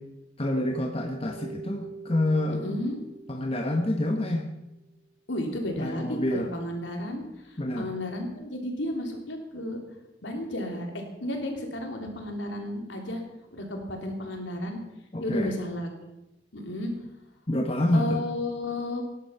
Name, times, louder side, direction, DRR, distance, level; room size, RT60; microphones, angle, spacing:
voice 1, 0.4-2.8 3.3-4.5 5.8-6.5 7.6-7.9 15.1-15.5 17.5-18.2, left 1 dB, 30° left, 4 dB, 1.1 m, -27 dB
Keyboard (musical), 1.3-4.5, right 4 dB, 15° right, 1.7 m, -45 dB
voice 2, 2.5-3.0 5.3-9.8 10.2-13.2 13.5-14.8 15.2-15.9 16.5-16.9 17.9-19.0, left 1 dB, 75° left, 2 dB, 3.2 m, -33 dB
17.5 x 11.0 x 5.6 m, 0.96 s
head